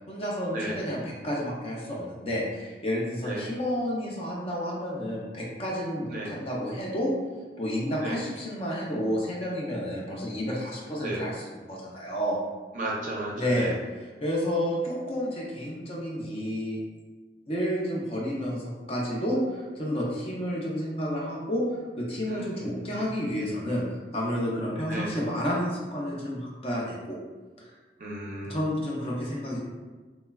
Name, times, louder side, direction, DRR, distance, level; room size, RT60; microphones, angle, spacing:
voice 1, 0.1-7.1 7.6-12.4 13.4-16.8 17.5-27.2 27.6-27.7 28.5-29.6, equal, 35° left, -4 dB, 0.5 m, -30 dB
voice 2, 12.7-13.7 22.3-23.0 24.9-25.1 28.0-28.6, right 2 dB, 45° right, -3 dB, 0.5 m, -34 dB
3.0 x 2.2 x 2.2 m, 1.3 s
head